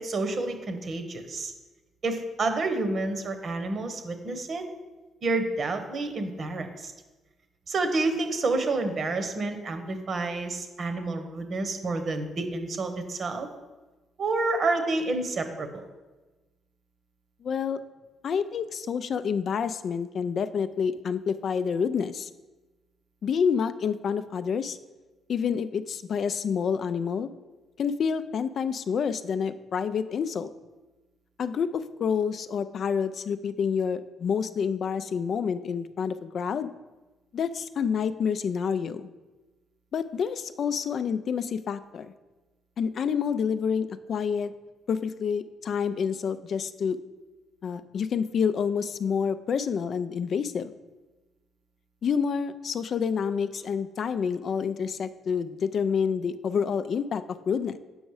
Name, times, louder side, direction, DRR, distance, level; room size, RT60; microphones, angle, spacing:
voice 1, 0.0-1.5 2.0-4.6 5.2-6.9 7.7-13.5 14.2-15.9, right 3 dB, 50° right, 7 dB, 1.0 m, -29 dB
voice 2, 17.4-17.8 18.2-22.3 23.2-24.8 25.3-27.3 27.8-30.5 31.4-36.7 37.3-39.1 39.9-42.1 42.8-44.5 44.9-47.0 47.6-50.7 52.0-57.8, left 6 dB, 55° left, 12 dB, 0.3 m, -28 dB
7.0 x 5.4 x 4.8 m, 1.2 s
cardioid pair, 90°, 0 cm